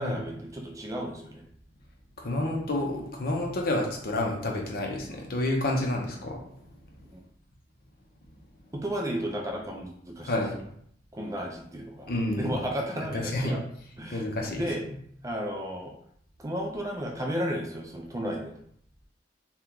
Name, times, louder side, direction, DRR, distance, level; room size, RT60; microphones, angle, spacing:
voice 1, 0.0-1.4 7.1-7.2 8.8-10.4 11.1-12.1 12.4-13.6 14.0-14.2 14.5-14.8 15.2-15.9 16.4-18.6, equal, 20° right, 1 dB, 0.4 m, -33 dB
voice 2, 2.2-6.4 10.2-10.6 12.1-12.6 13.1-13.5 14.1-14.6, left 1 dB, 55° left, 1 dB, 0.7 m, -29 dB
2.9 x 2.3 x 3.6 m, 0.67 s
head